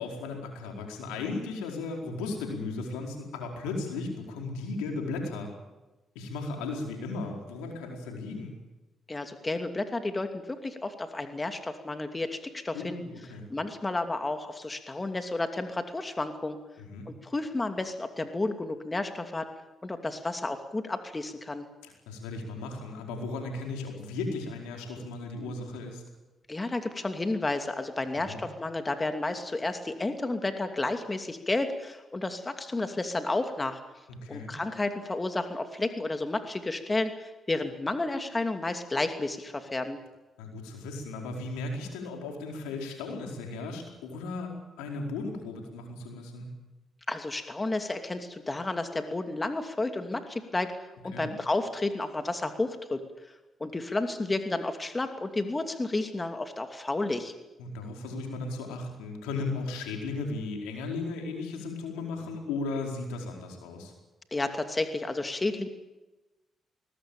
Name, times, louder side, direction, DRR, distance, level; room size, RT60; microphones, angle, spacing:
voice 1, 0.0-5.5 6.1-8.5 12.7-13.5 16.8-17.1 21.8-26.0 28.3-28.4 34.1-34.5 40.4-44.5 44.8-46.5 51.1-51.3 57.6-63.9, left 3 dB, 90° left, 2 dB, 4.7 m, -36 dB
voice 2, 9.1-13.0 13.5-16.6 17.1-19.5 19.8-21.6 26.5-33.8 34.3-40.0 47.1-50.7 51.0-53.3 53.6-57.3 64.3-65.7, left 2 dB, 25° left, 7 dB, 2.7 m, -31 dB
21.5 x 19.5 x 9.0 m, 1.1 s
supercardioid pair, 50°, 0 cm